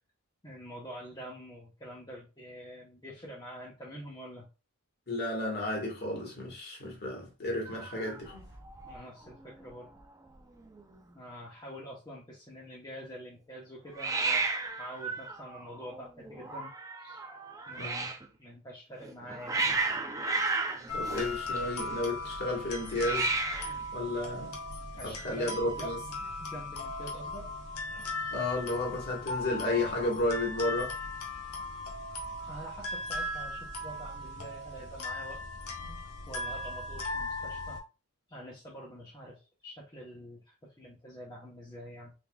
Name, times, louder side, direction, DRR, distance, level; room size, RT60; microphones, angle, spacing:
voice 1, 0.4-4.5 8.9-9.9 11.1-14.5 14.8-16.7 17.0-17.2 17.7-18.1 18.4-19.7 24.9-27.5 32.4-35.4 36.3-37.8 38.3-42.1, equal, 20° left, 0.8 m, -46 dB
voice 2, 5.1-8.5 17.8-18.1 20.9-23.3 23.9-24.6 25.0-26.0 28.3-30.9, left 2 dB, 50° left, 1.5 m, -32 dB
Hiss, 7.7-9.0 9.3-9.7 10.0-10.1 10.3-11.0 13.9-18.3 19.0-22.0 22.9-23.8, right 3 dB, 15° right, 0.4 m, -34 dB
sound 1, 20.9-37.8, left 2 dB, 80° left, 0.9 m, -38 dB
3.6 x 3.4 x 2.3 m
head